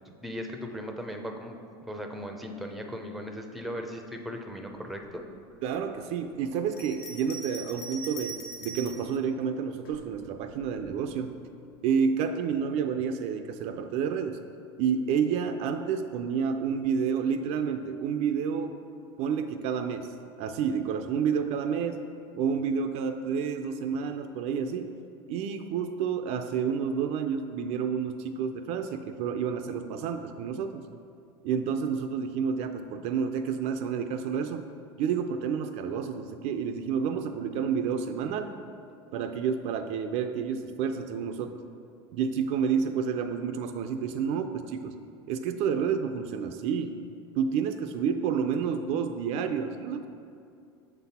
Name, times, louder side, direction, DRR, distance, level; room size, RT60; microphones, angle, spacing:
voice 1, 0.1-1.6 1.8-5.2, equal, ahead, 4 dB, 0.5 m, -38 dB
voice 2, 5.6-11.3 11.8-14.4 14.8-18.8 19.2-20.1 20.4-22.0 22.3-24.9 25.3-30.8 31.4-34.7 35.0-38.5 39.1-41.6 42.1-45.0 45.3-47.0 47.4-50.1, right 6 dB, 55° right, 8 dB, 0.4 m, -29 dB
Bell, 6.7-9.1 9.8-10.8, right 2 dB, 75° left, 0.9 m, -41 dB
6.5 x 4.0 x 4.2 m, 2.4 s
supercardioid pair, 110°, 13 cm